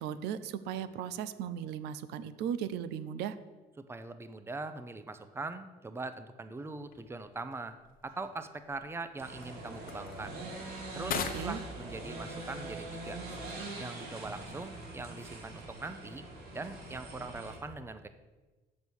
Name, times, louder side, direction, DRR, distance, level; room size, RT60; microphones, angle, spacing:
voice 1, 0.0-3.4 11.3-11.6, right 9 dB, 85° right, 14 dB, 0.6 m, -37 dB
voice 2, 3.9-7.8 8.0-10.4 10.9-13.2 13.8-16.2 16.5-18.1, right 3 dB, 15° right, 11 dB, 0.7 m, -42 dB
sound 1, 6.8-15.9, left 7 dB, 55° left, 1.0 m, -46 dB
sound 2, 9.2-17.6, right 2 dB, 65° right, 3.1 m, -43 dB
7.3 x 6.9 x 6.2 m, 1.2 s
cardioid pair, 110°, 17 cm